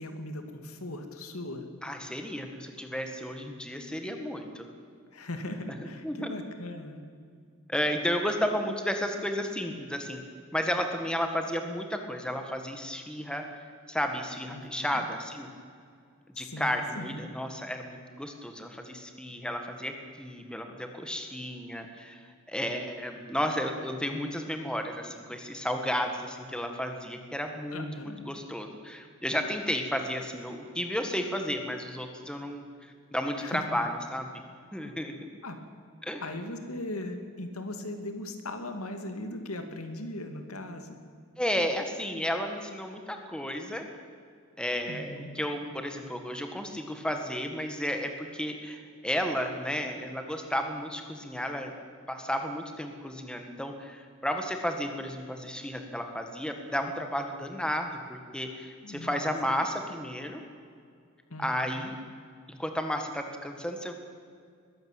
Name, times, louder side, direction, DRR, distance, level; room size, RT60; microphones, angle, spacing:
voice 1, 0.0-1.7 5.1-7.0 14.5-15.1 16.3-17.3 27.7-28.2 33.4-33.6 35.4-35.6 36.2-41.0 44.9-45.4 58.8-59.3 61.3-61.9, left 1 dB, 90° left, 6 dB, 2.4 m, -39 dB
voice 2, 1.8-4.7 5.7-5.8 6.0-6.3 7.7-10.2 10.5-13.5 13.9-15.5 16.4-22.2 22.5-34.3 34.7-35.3 36.0-36.2 41.4-43.8 44.6-51.7 52.1-60.4 61.4-62.0 62.5-63.9, equal, 5° left, 5 dB, 1.8 m, -33 dB
21.5 x 15.0 x 9.2 m, 2.2 s
head